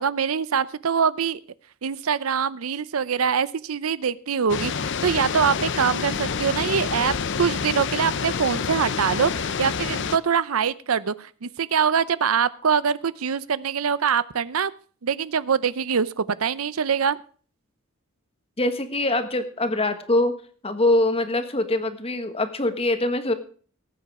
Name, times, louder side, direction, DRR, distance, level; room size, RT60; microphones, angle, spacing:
voice 1, 0.0-1.4 1.8-7.1 7.4-14.7 15.0-17.2, right 6 dB, 90° right, 18 dB, 0.6 m, -24 dB
sound 1, 4.5-10.2, left 5 dB, 60° left, 0.7 m, -28 dB
voice 2, 18.6-20.3 20.6-23.3, left 2 dB, 30° left, 9 dB, 1.4 m, -23 dB
18.5 x 8.5 x 4.8 m, 0.44 s
head